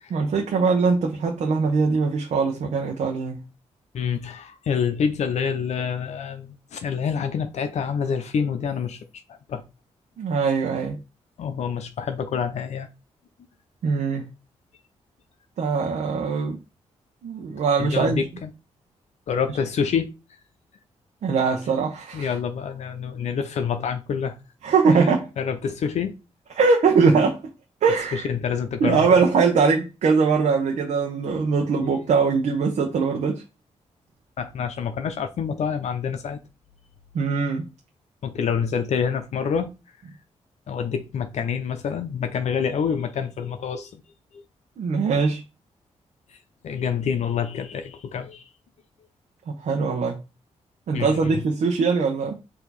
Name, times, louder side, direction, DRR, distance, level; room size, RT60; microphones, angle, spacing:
voice 1, 0.1-3.4 10.2-10.9 13.8-14.2 15.6-16.6 17.2-18.2 21.2-22.3 24.6-25.3 26.6-27.4 27.8-28.3 28.8-33.4 37.1-37.7 44.8-45.4 49.6-50.2 50.9-52.3, right 5 dB, 75° right, 0.9 m, -21 dB
voice 2, 3.9-9.0 9.5-9.6 11.4-12.9 17.8-18.5 19.3-20.1 22.1-24.4 24.9-26.1 28.1-29.2 34.4-36.4 38.2-39.7 40.7-44.0 46.6-48.4 50.9-51.4, left 7 dB, 70° left, 0.6 m, -27 dB
4.6 x 2.8 x 4.1 m
cardioid pair, 85°, 12 cm